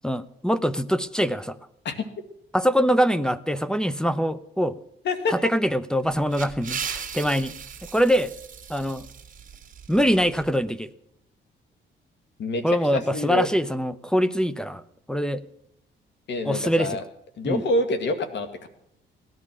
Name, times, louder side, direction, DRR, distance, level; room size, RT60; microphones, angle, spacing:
voice 1, 0.0-1.6 2.5-4.8 5.3-7.5 7.9-8.3 8.7-9.1 9.9-10.9 12.6-14.8 15.1-15.4 16.4-17.0 17.4-17.6, equal, 5° left, 15 dB, 0.7 m, -23 dB
voice 2, 5.0-5.5 12.4-13.5 16.3-17.0 17.4-18.7, left 2 dB, 60° left, 9 dB, 1.9 m, -27 dB
sound 1, 6.1-10.5, right 7 dB, 40° right, 2.0 m, -37 dB
17.5 x 11.5 x 6.1 m, 0.75 s
cardioid pair, 90°, 20 cm